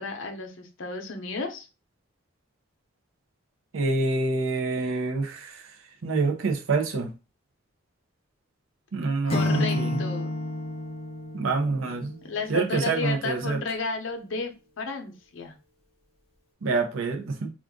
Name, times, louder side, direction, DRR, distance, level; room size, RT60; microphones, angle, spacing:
voice 1, 0.0-1.7 9.3-10.3 12.3-14.5 14.8-15.6, left 4 dB, 70° left, 0.6 m, -32 dB
voice 2, 3.7-5.6 6.0-7.1 8.9-10.0 11.3-12.2 12.5-13.6 16.6-17.5, right 3 dB, 75° right, 0.5 m, -26 dB
Acoustic guitar / Strum, 9.3-12.4, left 2 dB, 30° left, 0.5 m, -30 dB
2.5 x 2.3 x 3.6 m
head